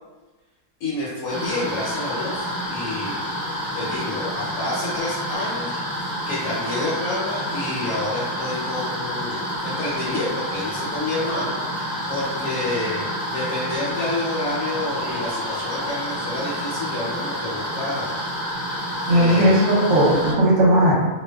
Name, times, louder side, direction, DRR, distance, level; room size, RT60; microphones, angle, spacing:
voice 1, 0.8-3.4 3.7-5.8 6.3-18.2 19.1-19.6, left 2 dB, 75° left, -8 dB, 1.1 m, -29 dB
sound 1, 1.3-20.3, equal, 15° left, 0.9 m, -29 dB
voice 2, 19.1-20.9, right 1 dB, 60° right, -7 dB, 0.9 m, -16 dB
2.5 x 2.2 x 2.2 m, 1.2 s
omnidirectional pair, 1.6 m